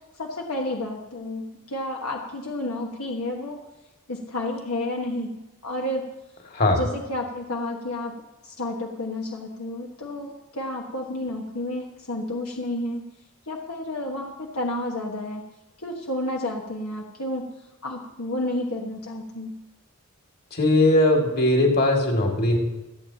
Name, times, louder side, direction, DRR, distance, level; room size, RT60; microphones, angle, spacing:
voice 1, 0.2-3.6 4.1-5.4 5.6-6.0 6.8-8.1 8.4-13.0 13.5-15.4 15.8-17.4 17.8-19.5, left 1 dB, 70° left, -1 dB, 1.4 m, -31 dB
voice 2, 20.5-22.6, left 1 dB, 45° left, 0 dB, 2.4 m, -19 dB
26.5 x 8.8 x 2.9 m, 0.98 s
head